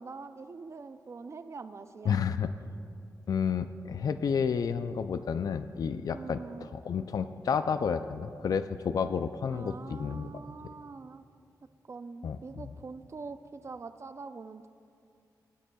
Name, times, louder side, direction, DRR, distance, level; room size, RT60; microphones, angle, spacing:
voice 1, 0.0-2.2 6.1-6.7 9.5-11.2 11.9-14.7, right 4 dB, 40° right, 10 dB, 0.5 m, -44 dB
voice 2, 2.0-2.5 3.3-10.3 12.2-12.7, left 6 dB, 60° left, 10 dB, 0.4 m, -31 dB
23.0 x 10.0 x 2.3 m, 2.4 s
wide cardioid pair, 110°, 7 cm